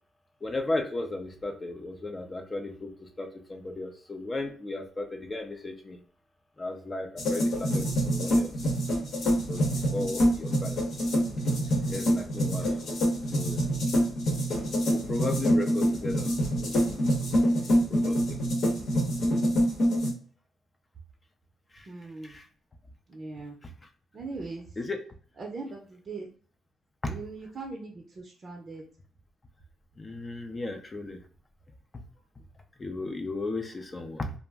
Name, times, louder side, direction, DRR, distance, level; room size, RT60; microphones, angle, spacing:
voice 1, 0.4-6.0 6.6-8.5 9.5-9.6 9.9-10.8 11.9-12.9 13.3-13.7 14.8-16.8 17.9-18.4 21.7-21.9 22.2-22.5 23.6-23.7 24.8-25.0 30.0-31.2 32.8-34.3, left 2 dB, 25° left, 4 dB, 0.4 m, -35 dB
sound 1, 7.2-20.1, equal, 65° left, 0.9 m, -26 dB
voice 2, 21.9-22.4 23.1-23.6 24.1-24.7 25.4-26.3 27.1-28.8, right 3 dB, 45° right, 1 dB, 0.5 m, -40 dB
2.4 x 2.0 x 3.4 m, 0.43 s
cardioid pair, 90°, 0 cm